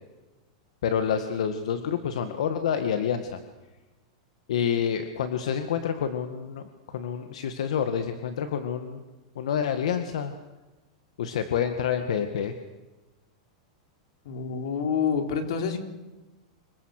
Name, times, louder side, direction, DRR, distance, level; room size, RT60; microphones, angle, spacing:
voice 1, 0.8-3.4 4.5-9.0 9.4-10.3 11.2-12.5, left 8 dB, 70° left, 8 dB, 1.9 m, -28 dB
voice 2, 14.3-15.8, left 6 dB, 55° left, 6 dB, 3.6 m, -27 dB
27.0 x 23.0 x 6.7 m, 1.1 s
supercardioid pair, 180°, 4 cm